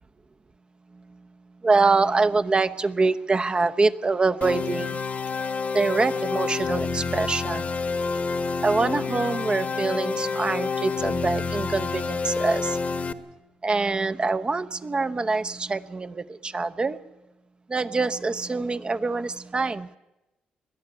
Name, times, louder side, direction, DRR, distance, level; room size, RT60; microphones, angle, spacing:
voice 1, 1.6-5.0 5.7-7.7 8.6-12.8 13.6-17.0 17.7-19.9, right 3 dB, 35° right, 10 dB, 0.9 m, -25 dB
sound 1, 4.4-13.1, left 4 dB, 50° left, 1.2 m, -28 dB
21.5 x 13.0 x 9.6 m, 0.99 s
cardioid pair, 70°, 3 cm